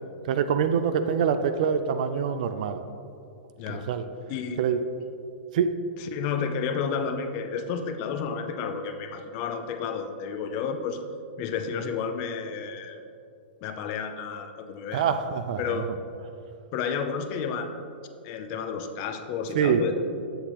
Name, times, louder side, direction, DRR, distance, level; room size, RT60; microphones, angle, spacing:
voice 1, 0.2-2.8 3.7-4.0 4.6-4.8 5.5-5.7 14.9-15.8 19.5-19.8, right 7 dB, 45° right, 9 dB, 0.4 m, -25 dB
voice 2, 4.3-4.6 6.0-11.0 11.4-13.0 13.6-15.1 15.6-15.9 16.7-17.7 18.2-19.9, left 6 dB, 25° left, 7 dB, 0.4 m, -31 dB
8.2 x 7.9 x 2.9 m, 2.5 s
hypercardioid pair, 170°, 6 cm